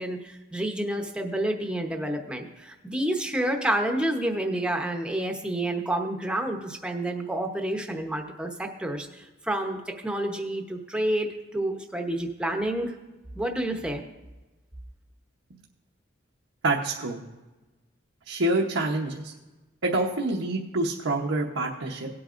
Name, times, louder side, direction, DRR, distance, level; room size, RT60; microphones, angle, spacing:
voice 1, 0.0-12.9 13.4-14.0, right 1 dB, 5° right, 3 dB, 0.9 m, -29 dB
voice 2, 16.6-17.2 18.3-19.3 19.8-22.1, right 2 dB, 85° right, -3 dB, 1.0 m, -27 dB
18.0 x 8.6 x 2.5 m, 1.1 s
head